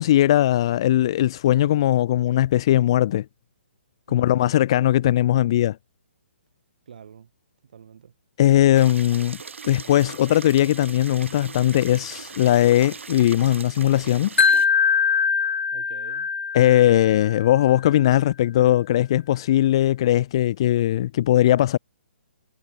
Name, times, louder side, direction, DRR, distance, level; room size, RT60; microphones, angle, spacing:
voice 1, 0.0-3.2 4.1-5.8 8.4-9.4 9.7-14.3 16.5-21.8, left 13 dB, 25° left, 1.1 m, -19 dB
voice 2, 4.1-4.6 6.9-7.3 7.6-8.1 15.7-16.3, right 7 dB, 45° right, 5.6 m, -46 dB
sound 1, 8.7-14.7, right 5 dB, 90° right, 5.1 m, -39 dB
Wind chime, 14.4-17.5, left 5 dB, 70° left, 2.1 m, -22 dB
hypercardioid pair, 180°, 7 cm